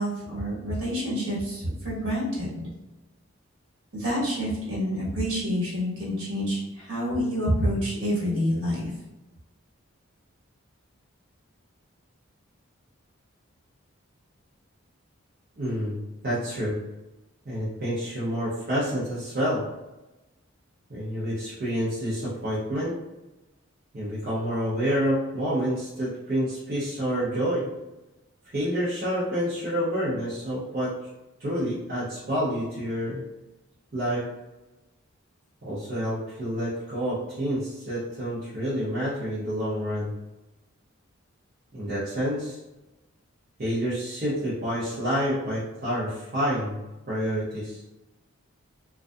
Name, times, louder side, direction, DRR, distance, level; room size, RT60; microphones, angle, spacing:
voice 1, 0.0-2.7 3.9-8.9, equal, 65° right, -6 dB, 1.2 m, -28 dB
voice 2, 15.6-16.8 17.5-19.7 20.9-23.0 23.9-27.7 28.5-31.1 31.4-33.2 33.9-34.3 35.6-40.1 41.7-42.6 43.6-46.8 47.1-47.8, equal, 40° right, -10 dB, 0.6 m, -28 dB
2.5 x 2.3 x 2.3 m, 1.0 s
head